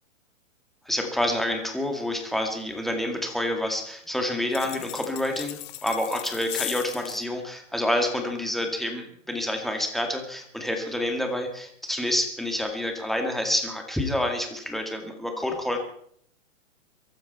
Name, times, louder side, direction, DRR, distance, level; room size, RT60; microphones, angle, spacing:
voice 1, 0.9-15.8, left 1 dB, ahead, 3 dB, 2.2 m, -28 dB
sound 1, 4.5-7.2, left 19 dB, 25° left, 0.6 m, -37 dB
23.5 x 12.5 x 4.3 m, 0.63 s
hypercardioid pair, 145°, 39 cm